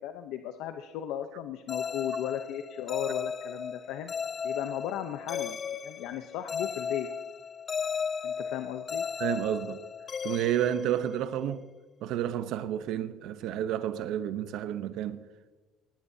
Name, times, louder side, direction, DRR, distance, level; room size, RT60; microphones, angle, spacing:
voice 1, 0.0-4.1 4.4-5.6 5.8-7.1 8.2-9.1, left 11 dB, 75° left, 0.7 m, -36 dB
sound 1, 1.7-11.5, left 6 dB, 30° left, 0.3 m, -35 dB
voice 2, 9.2-9.8 10.2-11.6 12.0-15.2, right 11 dB, 70° right, 0.8 m, -30 dB
19.5 x 18.0 x 2.8 m
cardioid pair, 135°, 0 cm